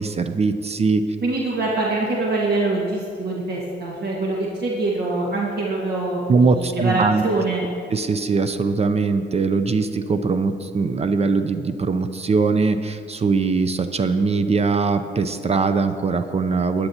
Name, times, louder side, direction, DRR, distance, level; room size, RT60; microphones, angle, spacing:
voice 1, 0.0-1.0 6.3-7.2 7.9-16.9, right 4 dB, 30° right, 10 dB, 0.5 m, -21 dB
voice 2, 1.2-7.6, right 2 dB, 55° right, -3 dB, 1.7 m, -24 dB
15.0 x 10.0 x 2.8 m, 2.4 s
cardioid pair, 90°, 20 cm